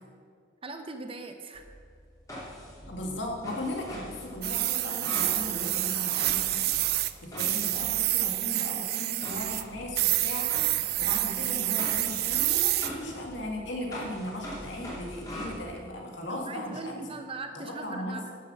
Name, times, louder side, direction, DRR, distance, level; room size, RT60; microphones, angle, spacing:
voice 1, 0.6-1.6 16.3-18.3, right 3 dB, 30° right, 6 dB, 0.8 m, -40 dB
sound 1, 1.5-8.4 9.2-15.6, equal, 20° left, 2.8 m, -43 dB
voice 2, 2.9-17.1 17.5-18.2, left 1 dB, 75° left, 0 dB, 2.1 m, -37 dB
sound 2, 4.4-7.1 7.4-9.6 10.0-12.9, right 16 dB, 55° right, 0.4 m, -28 dB
10.5 x 7.5 x 6.1 m, 2.2 s
head